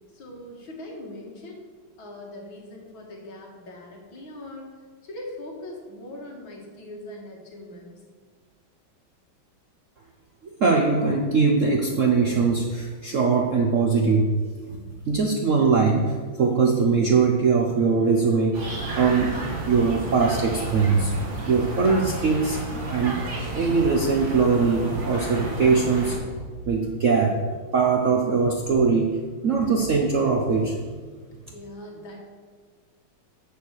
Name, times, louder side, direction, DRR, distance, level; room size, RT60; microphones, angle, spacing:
voice 1, 0.1-1.6 2.0-4.7 5.0-8.0 31.1-32.2, left 1 dB, 70° left, -1 dB, 2.5 m, -41 dB
voice 2, 10.4-14.3 15.1-19.3 19.7-21.1 21.5-22.6 22.9-23.1 23.5-26.2 26.6-27.4 27.7-29.2 29.4-30.8, right 4 dB, 55° right, 1 dB, 0.9 m, -21 dB
sound 1, 18.5-26.2, right 2 dB, 35° right, 2.0 m, -32 dB
7.2 x 6.7 x 7.9 m, 1.5 s
omnidirectional pair, 2.3 m